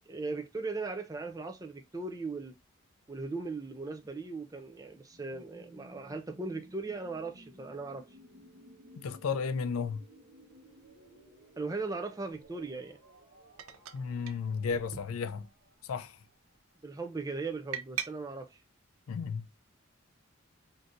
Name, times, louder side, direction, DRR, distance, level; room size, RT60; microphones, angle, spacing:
voice 1, 0.0-2.6 3.1-8.0 11.6-13.0 16.8-18.6, right 3 dB, 15° right, 0.4 m, -38 dB
sound 1, 5.0-16.8, equal, 45° right, 1.1 m, -57 dB
voice 2, 9.0-10.0 13.9-15.5 15.8-16.2 19.1-19.5, left 5 dB, 90° left, 0.4 m, -33 dB
sound 2, 10.6-10.7 12.3-12.5 13.6-14.0 14.3-14.4 14.7-15.6 15.9-16.3 17.7-18.1, right 9 dB, 85° right, 0.4 m, -41 dB
3.7 x 2.7 x 2.5 m
head